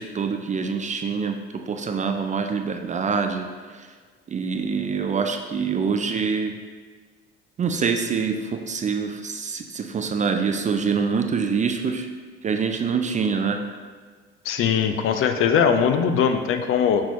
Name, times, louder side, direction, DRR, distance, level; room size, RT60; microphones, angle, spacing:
voice 1, 0.0-1.4 1.7-3.5 4.3-6.5 7.6-12.1 12.4-13.6, right 5 dB, 25° right, 5 dB, 0.4 m, -25 dB
voice 2, 14.4-17.0, left 7 dB, 40° left, 7 dB, 0.5 m, -20 dB
6.4 x 5.9 x 2.8 m, 1.5 s
hypercardioid pair, 60°, 32 cm